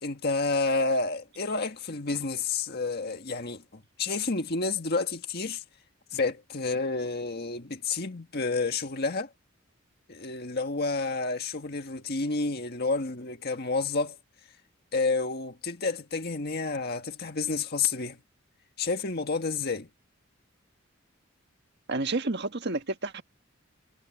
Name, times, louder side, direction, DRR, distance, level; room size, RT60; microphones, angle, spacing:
voice 1, 0.0-5.6 6.1-9.3 10.1-14.2 14.9-18.2 18.8-19.9, left 3 dB, 55° left, 1.6 m, -30 dB
voice 2, 21.9-23.2, right 2 dB, 60° right, 1.6 m, -30 dB
head